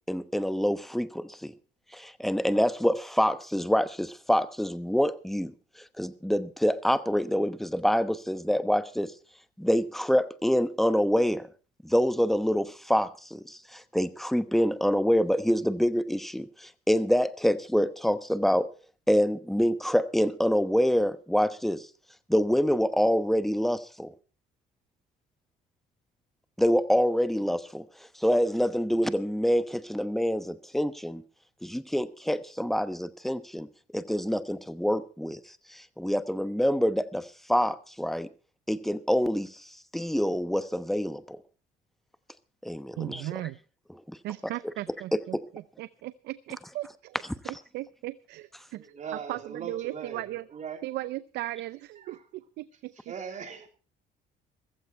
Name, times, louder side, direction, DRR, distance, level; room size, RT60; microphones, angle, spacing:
voice 1, 0.1-1.5 1.9-9.1 9.6-11.5 11.8-18.7 19.1-21.9 22.3-24.1 26.6-27.9 28.1-31.2 31.6-35.4 35.7-38.3 38.7-39.6 39.9-41.4 42.6-43.2 44.1-44.2 45.1-45.4, equal, ahead, 1.0 m, -26 dB
voice 2, 43.0-43.6 44.2-47.2 47.4-48.9 49.3-50.4 50.8-52.9, right 16 dB, 80° right, 0.6 m, -37 dB
voice 3, 48.7-50.8 51.9-52.3 52.7-53.7, right 7 dB, 45° right, 3.2 m, -40 dB
15.5 x 14.5 x 4.5 m
cardioid pair, 110°, 17 cm